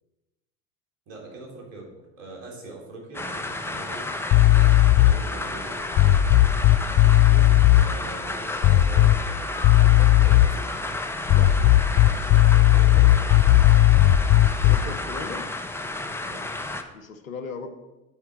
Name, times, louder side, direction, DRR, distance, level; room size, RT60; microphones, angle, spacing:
voice 1, 1.1-4.1 4.9-5.9 7.7-10.7 12.7-13.4 16.2-16.4, right 2 dB, 65° right, -1 dB, 3.3 m, -42 dB
sound 1, 3.1-16.8, left 2 dB, 5° left, 0.8 m, -32 dB
sound 2, 4.3-5.3 5.9-7.9 8.6-9.4 9.6-10.6 11.3-14.9, left 14 dB, 40° left, 0.5 m, -16 dB
voice 2, 14.6-15.5 16.9-17.8, left 5 dB, 80° left, 6 dB, 1.0 m, -36 dB
8.4 x 4.6 x 7.4 m, 1.1 s
hypercardioid pair, 80°, 41 cm